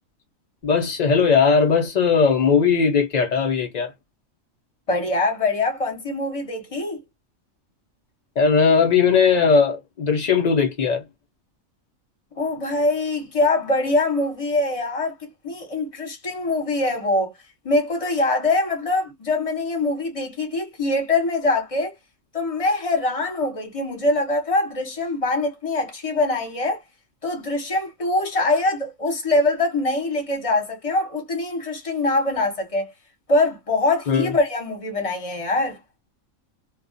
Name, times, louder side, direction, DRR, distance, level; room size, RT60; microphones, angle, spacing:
voice 1, 0.6-3.9 8.4-11.0 34.1-34.3, left 5 dB, 70° left, 0.4 m, -18 dB
voice 2, 4.9-7.0 12.3-17.3 17.6-21.9 22.3-26.8 27.2-32.9 33.3-35.8, left 2 dB, 30° left, 0.8 m, -23 dB
2.3 x 2.1 x 2.4 m
omnidirectional pair, 1.4 m